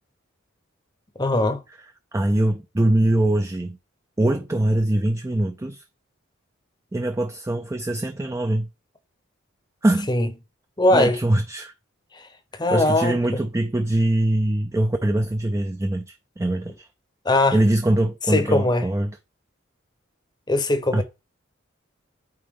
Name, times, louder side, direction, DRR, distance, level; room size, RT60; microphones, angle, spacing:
voice 1, 1.2-1.6 10.1-10.3 10.8-11.2 12.1-12.3 12.6-13.2 17.2-17.6 18.3-18.9 20.5-21.0, left 2 dB, 20° left, 0.7 m, -20 dB
voice 2, 2.1-3.8 4.2-5.8 6.9-8.7 9.8-10.1 10.9-11.7 12.7-16.9 17.5-19.1 20.9-21.0, right 1 dB, 15° right, 0.4 m, -22 dB
8.7 x 3.6 x 3.6 m
head